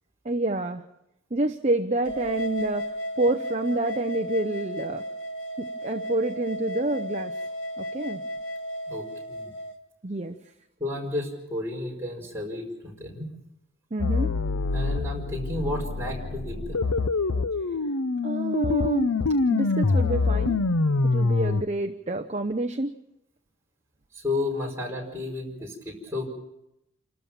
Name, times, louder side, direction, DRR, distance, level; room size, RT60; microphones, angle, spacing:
voice 1, 0.2-0.8 1.3-2.8 3.2-5.0 5.6-7.3 7.8-8.2 10.0-10.4 13.9-14.3 18.2-19.1 19.5-20.6 21.0-22.9, right 2 dB, 30° right, 6 dB, 0.7 m, -28 dB
sound 1, 2.1-9.7, equal, 65° left, 1.8 m, -34 dB
voice 2, 8.9-9.5 10.8-13.3 14.7-16.9 24.1-26.2, left 2 dB, 15° right, -2 dB, 4.9 m, -32 dB
sound 2, 14.0-21.6, left 3 dB, 90° left, 0.8 m, -25 dB
28.5 x 13.5 x 7.2 m, 0.87 s
head